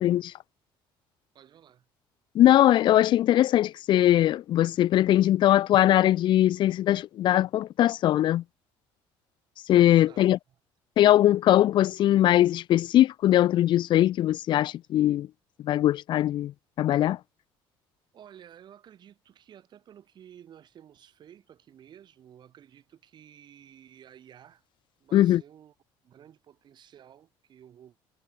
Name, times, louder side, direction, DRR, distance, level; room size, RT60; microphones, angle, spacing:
voice 1, 0.0-0.3 2.3-8.4 9.7-10.4 11.0-15.3 15.6-16.5 16.8-17.2 25.1-25.4, left 13 dB, 55° left, 0.5 m, -21 dB
voice 2, 1.3-1.9 9.9-10.3 11.0-11.4 18.1-24.6 25.0-25.7 26.0-28.0, right 10 dB, 50° right, 5.5 m, -53 dB
cardioid pair, 105°, 10 cm